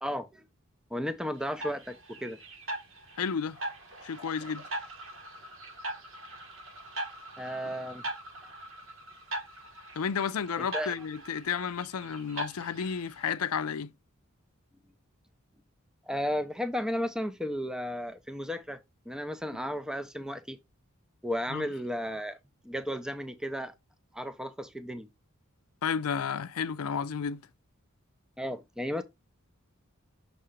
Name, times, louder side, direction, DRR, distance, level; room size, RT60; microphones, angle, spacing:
voice 1, 0.0-0.4 0.9-2.4 7.4-8.0 10.6-10.9 16.1-18.8 19.1-20.6 21.2-22.4 22.6-23.7 24.1-25.1 28.4-29.0, equal, 5° right, 0.5 m, -34 dB
sound 1, 1.4-13.3, right 1 dB, 60° right, 1.4 m, -41 dB
voice 2, 3.2-3.6 4.0-4.7 9.9-13.9 21.5-21.7 25.8-27.5, left 6 dB, 85° left, 0.5 m, -32 dB
6.6 x 2.9 x 4.9 m
head